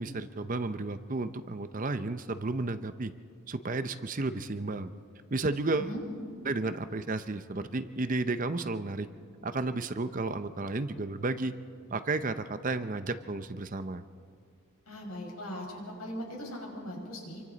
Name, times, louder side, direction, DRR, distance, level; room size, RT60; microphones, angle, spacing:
voice 1, 0.0-3.1 3.5-4.9 5.3-5.9 6.4-9.1 9.4-11.5 11.9-14.0, right 3 dB, 35° right, 11 dB, 0.6 m, -32 dB
voice 2, 14.9-17.4, equal, 80° left, -1 dB, 5.4 m, -39 dB
28.0 x 24.0 x 4.0 m, 2.3 s
head